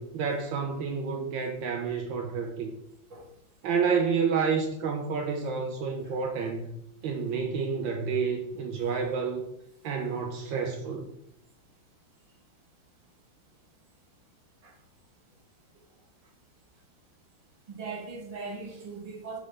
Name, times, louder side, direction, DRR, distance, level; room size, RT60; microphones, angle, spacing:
voice 1, 0.0-2.7 3.6-6.7 7.0-9.5 9.8-11.1, right 5 dB, 70° right, 2 dB, 1.4 m, -29 dB
voice 2, 17.7-19.4, right 4 dB, 20° right, -2 dB, 1.2 m, -39 dB
5.3 x 3.9 x 4.9 m, 0.78 s
omnidirectional pair, 2.3 m